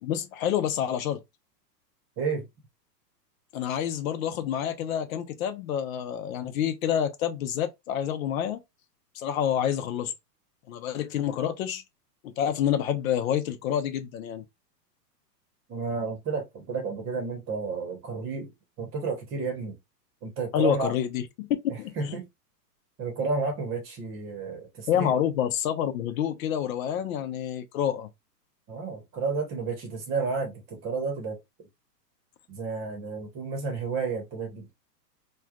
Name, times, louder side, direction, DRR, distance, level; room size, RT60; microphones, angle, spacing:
voice 1, 0.0-1.2 3.5-8.6 9.1-10.1 10.7-11.8 12.4-14.4 20.5-21.5 21.8-22.2 24.9-28.1, left 10 dB, 55° left, 0.7 m, -28 dB
voice 2, 15.7-18.5 18.8-19.8 20.2-20.9 21.7-22.3 23.0-25.2 28.7-31.4 32.5-34.7, right 4 dB, 25° right, 0.9 m, -31 dB
3.2 x 2.3 x 2.4 m
hypercardioid pair, 130°, 50 cm